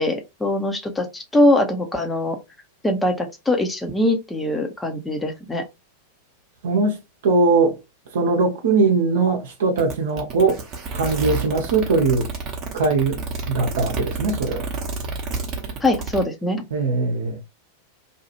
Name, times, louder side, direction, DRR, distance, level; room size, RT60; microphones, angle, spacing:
voice 1, 0.0-2.4 2.8-5.6 15.8-16.6, left 1 dB, 10° left, 0.7 m, -22 dB
voice 2, 6.6-7.0 7.2-7.8 8.1-10.6 10.9-12.3 12.7-14.7 16.7-17.4, right 3 dB, 60° right, 0.7 m, -20 dB
sound 1, 9.8-16.2, right 4 dB, 35° right, 0.8 m, -29 dB
2.8 x 2.3 x 2.9 m
figure-of-eight pair, 90°, 0 cm